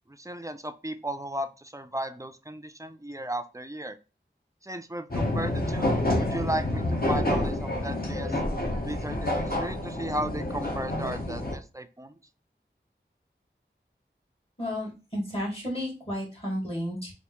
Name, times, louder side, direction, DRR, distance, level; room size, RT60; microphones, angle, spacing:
voice 1, 0.1-4.0 4.6-8.4 8.8-12.1, right 1 dB, 15° right, 10 dB, 0.3 m, -35 dB
sound 1, 5.1-11.6, left 1 dB, 50° left, 0.8 m, -28 dB
voice 2, 14.6-17.1, equal, 30° left, -4 dB, 1.8 m, -32 dB
3.3 x 2.5 x 2.9 m, 0.30 s
wide cardioid pair, 40°, 20 cm